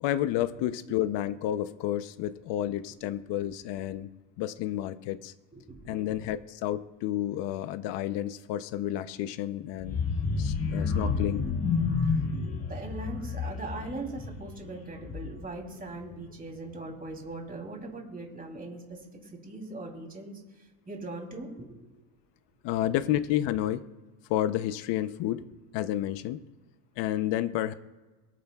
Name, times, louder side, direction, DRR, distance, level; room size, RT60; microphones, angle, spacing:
voice 1, 0.0-4.1 4.4-5.3 5.9-10.0 10.4-11.4 22.6-23.8 24.3-25.4 25.7-26.4 27.0-27.7, left 13 dB, 60° left, 11 dB, 0.8 m, -30 dB
voice 2, 5.5-6.0 12.6-21.7, right 2 dB, 15° right, 1 dB, 3.1 m, -40 dB
sound 1, 9.8-15.6 15.9-16.2 16.5-16.6, left 4 dB, 30° left, 1.5 m, -30 dB
23.5 x 9.3 x 2.4 m, 1.2 s
supercardioid pair, 120°, 49 cm